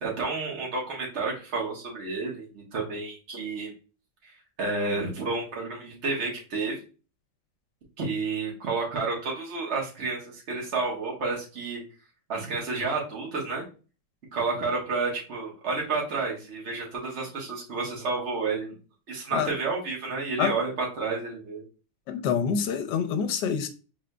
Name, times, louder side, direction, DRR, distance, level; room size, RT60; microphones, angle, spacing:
voice 1, 0.0-3.7 4.2-4.3 4.6-6.8 8.0-11.8 12.3-13.6 14.3-18.7 19.1-21.6, right 3 dB, 45° right, 1.5 m, -30 dB
voice 2, 22.1-23.7, left 7 dB, 80° left, 1.2 m, -26 dB
4.8 x 3.7 x 2.2 m
omnidirectional pair, 1.9 m